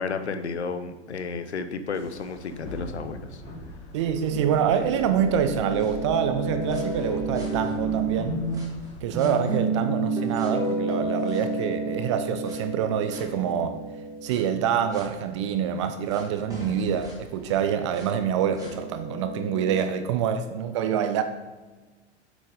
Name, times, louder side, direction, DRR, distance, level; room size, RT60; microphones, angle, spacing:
voice 1, 0.0-3.4, left 5 dB, 70° left, 0.8 m, -32 dB
sound 1, 1.9-9.0, right 1 dB, 15° left, 2.0 m, -41 dB
voice 2, 3.9-8.4 9.0-13.8 14.2-21.2, right 8 dB, 25° right, 0.4 m, -26 dB
sound 2, 4.3-8.6 9.1-15.1 16.1-16.2 16.5-19.8, right 2 dB, 10° right, 1.8 m, -31 dB
7.8 x 6.0 x 3.7 m
figure-of-eight pair, 100°, 35 cm